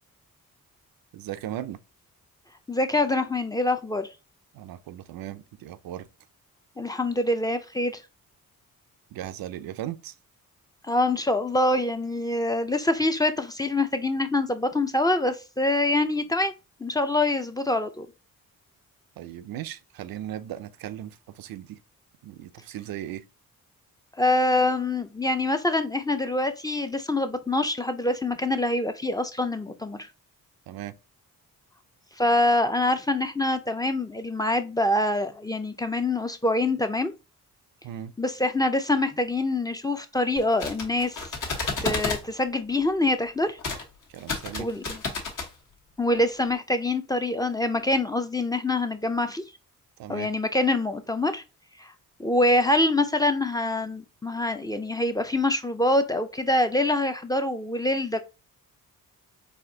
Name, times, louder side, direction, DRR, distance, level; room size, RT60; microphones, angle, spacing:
voice 1, 1.1-1.8 4.5-6.1 9.1-10.1 19.2-21.8 22.2-23.2 30.7-30.9 37.8-38.1 44.1-44.7 50.0-50.3, right 12 dB, 85° right, 0.5 m, -37 dB
voice 2, 2.7-4.1 6.8-8.0 10.8-16.5 16.8-18.1 24.2-30.1 32.2-37.1 38.2-41.2 41.8-43.6 44.6-45.0 46.0-49.4 50.1-51.4 51.8-51.9 52.2-58.2, left 2 dB, 10° left, 0.4 m, -25 dB
sound 1, 40.4-42.2 43.6-43.8 44.1-45.5, left 3 dB, 65° left, 1.3 m, -31 dB
4.2 x 2.7 x 2.7 m
cardioid pair, 90°, 34 cm